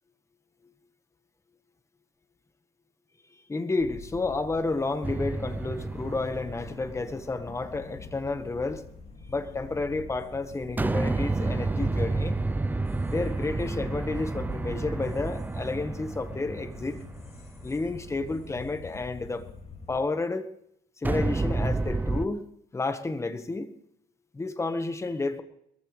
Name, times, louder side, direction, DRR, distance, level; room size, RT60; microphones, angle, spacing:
voice 1, 3.5-8.8 9.3-12.4 13.1-17.0 17.6-19.4 19.9-20.5 21.0-22.4 22.7-23.7 24.3-25.4, left 3 dB, 15° left, 9 dB, 1.3 m, -31 dB
sound 1, 3.8-20.0, left 4 dB, 40° left, 2.3 m, -45 dB
sound 2, 5.0-7.6 10.8-18.0 21.0-22.2, right 3 dB, 10° right, 0.5 m, -30 dB
22.5 x 14.5 x 3.3 m, 0.73 s
cardioid pair, 110°, 17 cm